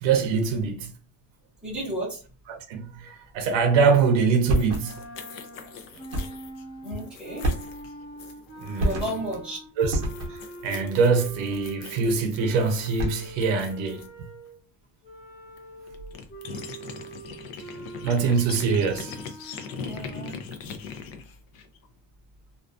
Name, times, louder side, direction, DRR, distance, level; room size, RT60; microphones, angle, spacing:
voice 1, 0.0-0.9 2.5-5.0 8.6-9.1 9.8-14.1 18.0-19.2, right 5 dB, 70° right, 0.7 m, -24 dB
voice 2, 1.6-2.2 6.8-7.5 8.8-9.6 19.8-20.6, right 1 dB, ahead, 0.7 m, -33 dB
sound 1, 4.5-9.4 9.8-14.1 15.6-15.7 15.9-21.9, left 6 dB, 55° left, 0.5 m, -41 dB
sound 2, 4.5-5.1 6.1-6.5 7.4-8.0 8.8-9.4 9.9-10.6 12.8-13.4, right 1 dB, 35° right, 0.8 m, -29 dB
sound 3, 4.8-14.6 15.0-20.3, right 2 dB, 25° left, 1.1 m, -44 dB
2.4 x 2.2 x 2.4 m
cardioid pair, 170°, 46 cm